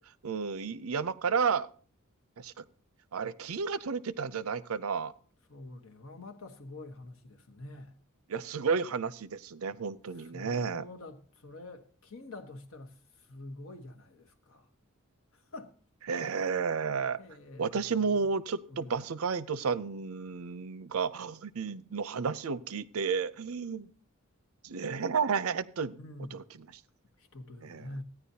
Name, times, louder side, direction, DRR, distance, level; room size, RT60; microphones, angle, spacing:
voice 1, 0.2-1.7 2.4-2.6 3.1-5.1 8.3-10.8 16.1-17.2 17.6-23.9 24.6-26.0 26.3-26.4 27.6-27.9, right 5 dB, 80° right, 0.6 m, -32 dB
voice 2, 5.5-7.9 10.1-14.7 15.3-15.7 16.1-16.6 17.2-18.3 18.7-19.1 26.0-26.4 27.2-28.0, left 2 dB, 75° left, 1.3 m, -47 dB
15.5 x 9.8 x 2.8 m
head